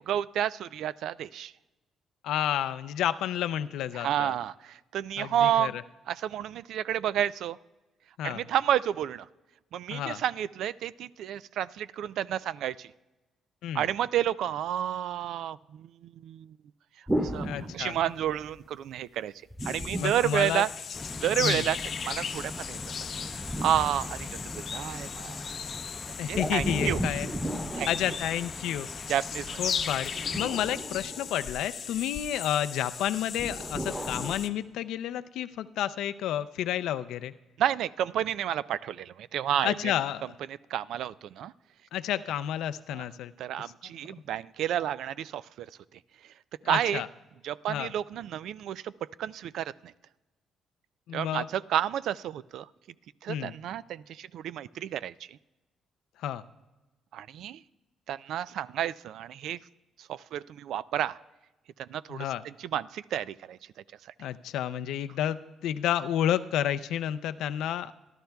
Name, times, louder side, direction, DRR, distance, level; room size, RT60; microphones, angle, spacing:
voice 1, 0.0-1.5 3.9-5.8 6.1-7.6 8.2-9.3 9.7-12.9 13.7-16.5 17.2-17.5 17.7-19.3 19.6-20.7 21.2-22.8 23.2-25.5 26.3-27.0 27.7-27.9 29.1-29.6 37.6-39.9 40.7-41.5 42.9-43.0 43.4-45.7 46.7-47.0 47.4-48.9 49.2-49.9 51.1-52.7 53.2-55.4 57.1-57.6 58.1-59.6 60.0-61.2 61.8-63.6, right 11 dB, 75° right, 18 dB, 0.3 m, -30 dB
voice 2, 2.2-4.4 5.2-5.8 8.2-8.4 9.9-10.2 13.6-13.9 17.4-18.0 20.0-20.6 21.4-21.6 26.2-27.3 27.9-28.9 29.6-37.3 39.6-40.2 41.9-43.3 46.6-47.1 47.7-47.9 51.1-51.5 53.3-53.5 56.2-56.4 62.1-62.4 64.2-67.9, left 11 dB, 85° left, 12 dB, 0.4 m, -30 dB
sound 1, 17.1-18.5 19.5-21.1 22.8-24.8 26.3-28.9 30.0-31.9 33.4-34.4, equal, 10° right, 1.5 m, -35 dB
sound 2, 19.6-34.5, left 7 dB, 55° left, 0.7 m, -37 dB
sound 3, 20.9-30.4, left 2 dB, 15° left, 0.6 m, -42 dB
27.5 x 11.5 x 2.3 m, 1.1 s
cardioid pair, 100°, 0 cm